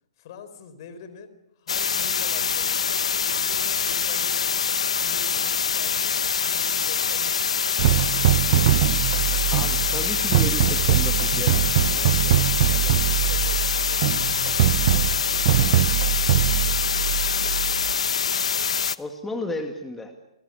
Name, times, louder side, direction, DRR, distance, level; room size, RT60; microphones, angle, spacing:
voice 1, 0.2-4.7 5.0-7.6 7.8-8.8 11.8-14.8 15.3-15.9 17.2-17.6, left 6 dB, 50° left, 12 dB, 4.3 m, -45 dB
sound 1, 1.7-19.0, left 6 dB, 80° left, 0.9 m, -25 dB
sound 2, 7.8-17.9, right 13 dB, 45° right, 0.9 m, -22 dB
voice 2, 9.2-11.7 19.0-20.1, left 2 dB, 5° left, 4 dB, 2.1 m, -33 dB
28.5 x 20.5 x 7.0 m, 0.88 s
hypercardioid pair, 145°, 3 cm